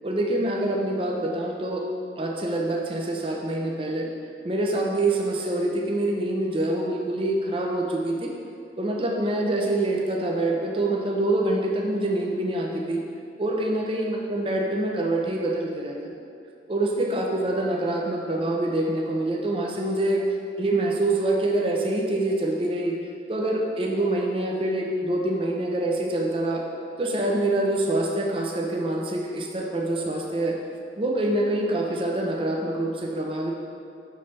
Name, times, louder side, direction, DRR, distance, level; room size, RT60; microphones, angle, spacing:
voice 1, 0.0-1.9 2.2-4.1 4.4-8.3 8.8-13.0 13.4-16.0 16.7-20.2 20.6-22.9 23.3-26.6 27.0-30.6 31.0-33.5, right 1 dB, 30° right, 0 dB, 0.6 m, -25 dB
5.6 x 3.3 x 5.2 m, 2.3 s
head